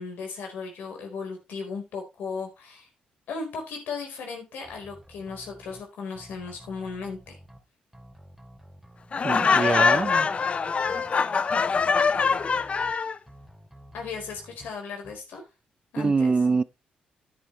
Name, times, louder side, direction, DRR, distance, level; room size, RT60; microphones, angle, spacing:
voice 1, 0.0-2.9 3.3-7.4 13.9-15.4 15.9-16.3, left 5 dB, 80° left, 4.4 m, -36 dB
sound 1, 4.6-5.8 6.2-7.6 7.9-9.4 9.7-11.1 11.5-12.9 13.3-14.7 15.0-15.1, equal, 5° right, 2.6 m, -50 dB
Laughter, 9.1-13.2, left 5 dB, 40° left, 0.7 m, -23 dB
voice 2, 9.2-10.3 16.0-16.6, right 4 dB, 30° right, 0.5 m, -24 dB
10.5 x 9.7 x 3.2 m
cardioid pair, 70°, 3 cm